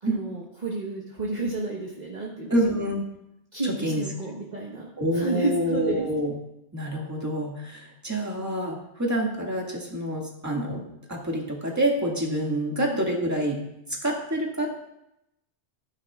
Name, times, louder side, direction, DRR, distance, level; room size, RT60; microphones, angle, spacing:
voice 1, 0.0-2.6 3.5-6.1 12.8-13.0, right 2 dB, 35° right, -4 dB, 1.4 m, -31 dB
voice 2, 2.5-3.0 3.6-4.1 5.0-6.3 6.7-10.8 11.1-13.6 14.0-14.7, right 1 dB, 15° right, -2 dB, 2.0 m, -27 dB
16.0 x 9.5 x 2.4 m, 0.83 s
omnidirectional pair, 1.2 m